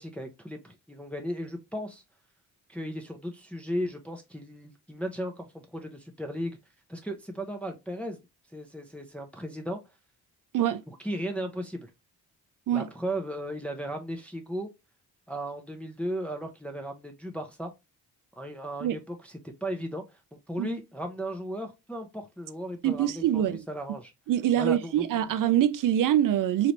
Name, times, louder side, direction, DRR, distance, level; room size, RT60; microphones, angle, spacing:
voice 1, 0.0-2.0 2.7-6.6 6.9-8.2 8.5-9.8 10.9-11.9 12.7-14.7 15.3-17.7 18.3-24.1 24.6-25.0, equal, 5° left, 0.7 m, -36 dB
voice 2, 22.8-23.7 24.3-26.7, right 11 dB, 50° right, 0.4 m, -24 dB
3.3 x 2.4 x 2.9 m
supercardioid pair, 60°, 43 cm